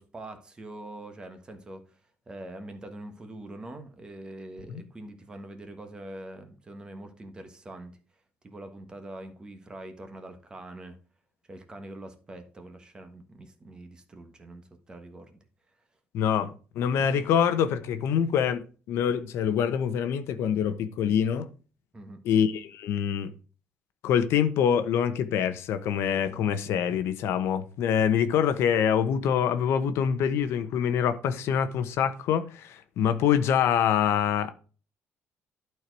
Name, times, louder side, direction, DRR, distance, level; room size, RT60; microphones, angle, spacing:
voice 1, 0.0-2.0 2.3-8.0 8.4-11.0 11.5-15.4 21.9-22.2, right 1 dB, 20° right, 1.3 m, -44 dB
voice 2, 16.1-21.5 22.2-23.3 24.0-34.5, left 8 dB, 65° left, 1.0 m, -25 dB
11.5 x 4.6 x 4.6 m
cardioid pair, 160°, 5 cm